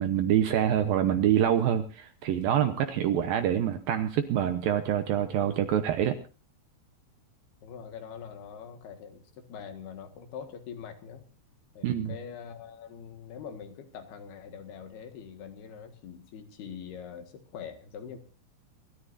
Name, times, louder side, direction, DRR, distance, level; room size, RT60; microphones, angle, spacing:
voice 1, 0.0-6.2 11.8-12.1, right 10 dB, 70° right, 8 dB, 2.3 m, -26 dB
voice 2, 7.6-11.2 11.8-18.2, left 7 dB, 70° left, 6 dB, 3.5 m, -43 dB
28.0 x 13.5 x 2.6 m, 0.35 s
omnidirectional pair, 5.0 m